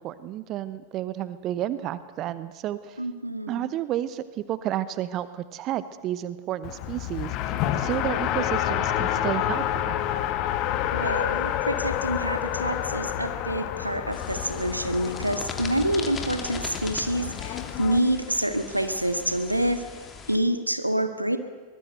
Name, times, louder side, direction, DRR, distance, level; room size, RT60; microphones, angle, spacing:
voice 1, 0.0-3.0 3.5-10.0, right 12 dB, 35° right, 15 dB, 0.9 m, -31 dB
voice 2, 3.0-3.7 10.9-19.8 20.3-21.4, right 1 dB, 85° right, 9 dB, 1.7 m, -27 dB
Race car auto racing, 6.6-18.0, left 11 dB, 40° left, 1.6 m, -29 dB
sound 1, 14.1-20.4, left 5 dB, 20° left, 2.9 m, -40 dB
23.5 x 21.0 x 7.9 m, 1.4 s
figure-of-eight pair, 90°, 0 cm